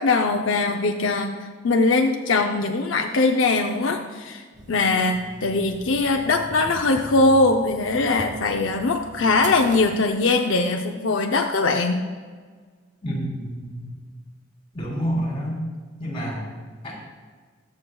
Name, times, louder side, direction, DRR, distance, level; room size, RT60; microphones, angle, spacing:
voice 1, 0.0-1.3 1.6-4.4 4.7-12.0, left 3 dB, 75° left, 2 dB, 0.6 m, -21 dB
sound 1, 4.5-10.6, right 2 dB, 40° right, 0.9 m, -41 dB
voice 2, 13.0-13.9 14.7-15.6 16.0-16.5 16.8-16.9, equal, 25° left, -4 dB, 3.3 m, -28 dB
21.0 x 7.5 x 2.3 m, 1.5 s
head